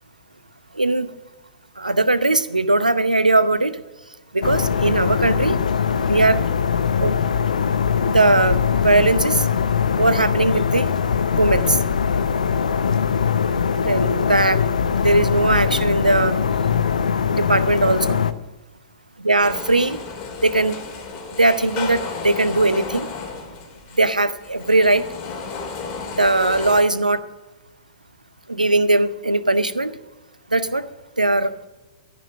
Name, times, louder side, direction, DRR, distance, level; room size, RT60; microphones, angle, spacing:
voice 1, 0.8-1.1 1.8-3.7 4.3-5.6 6.1-6.4 7.0-7.1 7.4-7.5 8.0-8.6 8.8-9.4 10.0-10.9 11.3-11.8 13.8-14.6 15.0-16.4 17.3-18.2 19.2-20.0 20.4-20.8 21.4-23.1 24.0-25.0 26.2-27.2 28.5-29.9 30.5-30.8 31.2-31.5, right 2 dB, 85° right, 14 dB, 0.7 m, -19 dB
sound 1, 4.4-18.3, left 7 dB, 65° left, 0.7 m, -21 dB
sound 2, 19.4-26.8, left 5 dB, 35° left, 2.9 m, -33 dB
14.0 x 6.0 x 7.4 m, 1.1 s
figure-of-eight pair, 105°, 4 cm